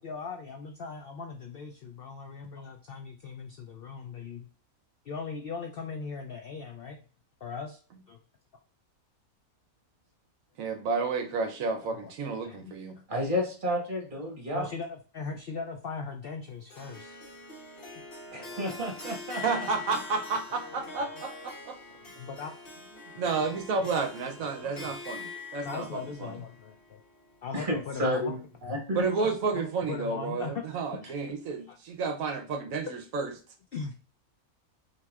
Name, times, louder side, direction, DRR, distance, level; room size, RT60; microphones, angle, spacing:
voice 1, 0.0-4.5 5.0-7.0 7.4-7.8 8.1-8.2 11.8-12.1 12.4-13.0 14.5-17.2 18.1-18.2 22.0-22.9 23.2-23.4 23.8-24.0 24.5-24.9 25.6-27.0 27.4-28.4 28.7-28.8 29.5-29.6 29.9-30.6 31.0-31.1 31.7-31.8 33.7-34.0, left 5 dB, 70° left, 4 dB, 0.5 m, -39 dB
voice 2, 10.6-13.0 19.4-21.8 23.2-26.3 28.9-33.3, right 4 dB, 70° right, 5 dB, 1.0 m, -31 dB
voice 3, 13.1-14.7 18.3-19.4 27.5-29.0, left 1 dB, 35° right, -1 dB, 1.5 m, -31 dB
Harp, 16.7-27.9, left 3 dB, 45° left, 1.1 m, -44 dB
5.8 x 2.9 x 2.3 m, 0.39 s
omnidirectional pair, 1.5 m